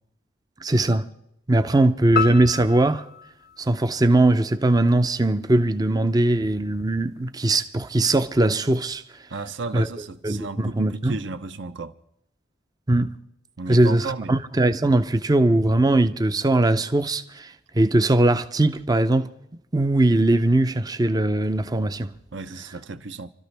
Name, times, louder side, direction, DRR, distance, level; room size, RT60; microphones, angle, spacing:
voice 1, 0.6-1.1 1.5-3.0 3.6-9.0 9.7-9.9 10.2-11.2 12.9-13.1 13.7-19.3 19.7-22.1, right 2 dB, 20° right, 0.5 m, -20 dB
sound 1, 2.2-4.6, left 7 dB, 50° left, 0.5 m, -31 dB
voice 2, 9.3-11.9 13.6-14.4 22.3-23.3, right 3 dB, 65° right, 0.8 m, -34 dB
28.0 x 13.0 x 3.4 m
head